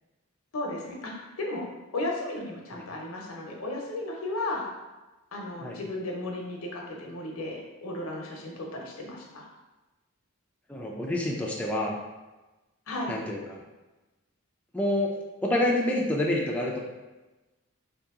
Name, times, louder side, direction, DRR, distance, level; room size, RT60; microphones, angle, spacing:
voice 1, 0.5-1.7 1.9-4.7 5.3-9.5 12.9-13.2, left 2 dB, 85° left, 0 dB, 0.8 m, -34 dB
voice 2, 10.7-12.0 13.1-13.6 14.7-15.1 15.4-16.8, left 1 dB, 5° left, -3 dB, 0.3 m, -27 dB
3.0 x 2.8 x 3.6 m, 1.1 s
head